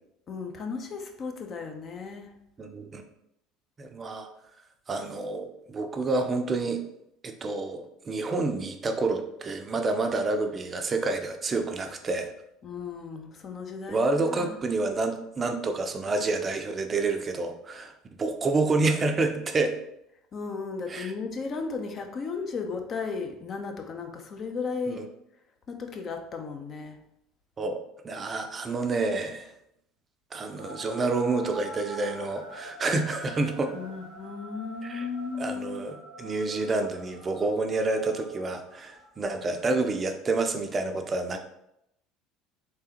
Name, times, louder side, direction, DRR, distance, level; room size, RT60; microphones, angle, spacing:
voice 1, 0.3-2.3 12.6-14.0 14.3-14.6 20.3-25.0 25.7-27.0 33.7-35.9, left 4 dB, 40° left, 5 dB, 0.6 m, -35 dB
voice 2, 2.6-3.0 3.8-4.3 4.9-6.8 7.2-12.3 13.9-17.9 18.2-19.7 20.9-21.1 24.9-25.0 27.6-27.8 28.0-29.5 30.3-33.7 34.8-35.1 35.4-41.4, right 3 dB, 30° right, 6 dB, 0.5 m, -28 dB
sound 1, 30.6-40.0, equal, 90° left, 1.1 m, -46 dB
3.5 x 3.3 x 2.9 m, 0.79 s
hypercardioid pair, 65°, 0 cm